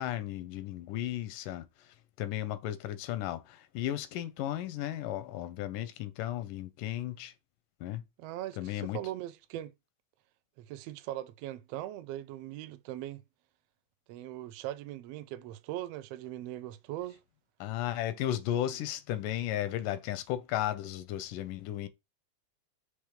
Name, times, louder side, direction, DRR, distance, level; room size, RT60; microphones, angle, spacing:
voice 1, 0.0-7.3 7.8-8.0 8.6-9.0 17.6-21.9, left 12 dB, 90° left, 2.3 m, -35 dB
voice 2, 8.2-9.7 10.6-13.2 14.1-17.2, right 14 dB, 85° right, 1.4 m, -40 dB
6.1 x 3.3 x 5.0 m
omnidirectional pair, 3.6 m